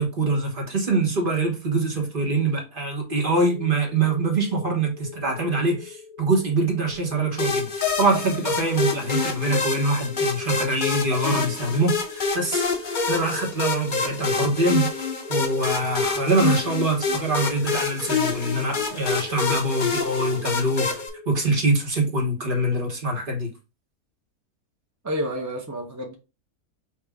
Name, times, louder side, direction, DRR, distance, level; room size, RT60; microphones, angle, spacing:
voice 1, 0.0-23.5, right 2 dB, 35° right, 1.3 m, -24 dB
sound 1, 3.0-21.6, left 3 dB, 60° left, 2.4 m, -43 dB
sound 2, 7.4-21.1, left 4 dB, 45° left, 0.7 m, -27 dB
voice 2, 25.0-26.1, equal, 20° right, 0.5 m, -29 dB
6.0 x 2.5 x 3.5 m
omnidirectional pair, 1.6 m